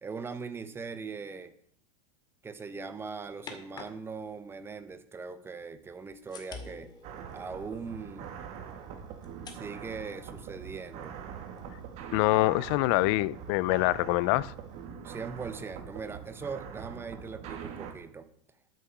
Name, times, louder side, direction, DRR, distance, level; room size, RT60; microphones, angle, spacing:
voice 1, 0.0-1.5 2.4-6.9 7.3-8.3 9.5-11.1 15.0-18.3, right 5 dB, 15° right, 1.1 m, -40 dB
sound 1, 2.8-5.0 5.8-14.9, left 4 dB, 30° left, 2.2 m, -53 dB
sound 2, 7.0-17.9, right 7 dB, 50° right, 2.0 m, -43 dB
voice 2, 12.1-14.5, left 20 dB, 60° left, 0.5 m, -25 dB
12.0 x 7.6 x 5.9 m
supercardioid pair, 130°, 15 cm